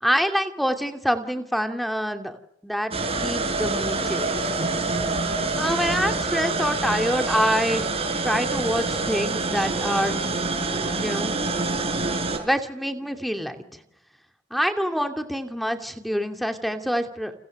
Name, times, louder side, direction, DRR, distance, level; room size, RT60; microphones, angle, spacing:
voice 1, 0.0-2.9 3.2-4.5 5.6-7.9 8.2-10.1 10.7-11.4 12.4-13.8 14.5-17.3, equal, ahead, 6 dB, 2.6 m, -26 dB
sound 1, 2.9-12.4, right 3 dB, 30° right, 5.7 m, -26 dB
29.5 x 27.5 x 6.7 m, 0.79 s
head